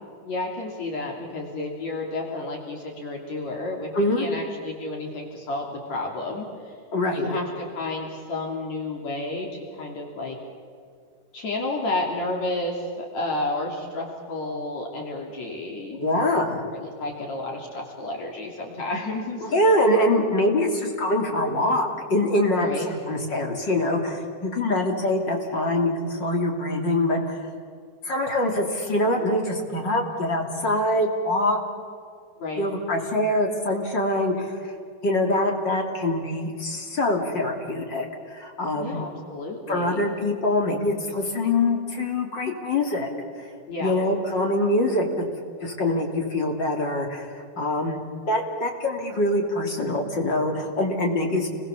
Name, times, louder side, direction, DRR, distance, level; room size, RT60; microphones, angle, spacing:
voice 1, 0.2-3.9 4.2-6.7 7.1-9.5 9.7-10.4 11.3-16.0 16.7-19.6 22.5-22.9 32.4-32.7 38.7-40.0 43.7-44.0, left 2 dB, 55° left, 0 dB, 4.0 m, -31 dB
voice 2, 3.9-4.3 6.9-7.4 16.0-16.6 19.4-27.5 28.0-31.6 32.6-34.7 35.0-38.0 38.3-39.0 39.7-43.1 43.4-43.5 43.8-45.2 45.6-48.0 48.3-51.5, left 1 dB, 35° left, 2 dB, 3.3 m, -24 dB
29.5 x 22.0 x 7.2 m, 2.1 s
omnidirectional pair, 3.8 m